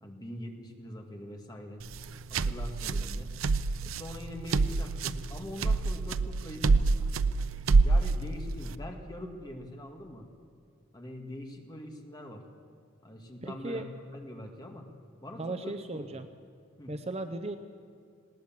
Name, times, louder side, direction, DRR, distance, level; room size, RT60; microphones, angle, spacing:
voice 1, 0.0-1.8 2.3-3.3 3.8-7.1 7.8-10.3 10.9-12.4 13.0-14.9 15.2-16.2 16.8-16.9, left 1 dB, 20° left, 2 dB, 2.0 m, -43 dB
sound 1, 1.8-8.7, right 3 dB, 85° right, 0.6 m, -27 dB
voice 2, 13.4-13.9 15.4-16.3 16.9-17.6, right 2 dB, 30° right, 9 dB, 0.7 m, -36 dB
19.0 x 18.5 x 7.5 m, 2.3 s
head